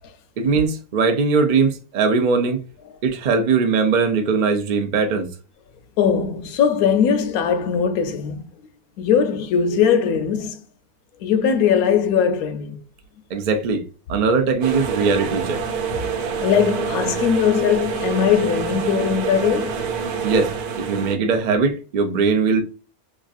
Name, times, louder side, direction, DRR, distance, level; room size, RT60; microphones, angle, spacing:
voice 1, 0.4-2.6 3.0-5.3 13.3-15.6 20.2-22.6, right 4 dB, 65° right, 0.4 m, -20 dB
voice 2, 6.0-8.5 9.0-10.6 11.2-12.8 15.9-19.8, left 7 dB, 75° left, 1.0 m, -20 dB
sound 1, 14.6-21.2, right 6 dB, 85° right, 1.1 m, -26 dB
3.0 x 2.4 x 2.4 m
omnidirectional pair, 1.6 m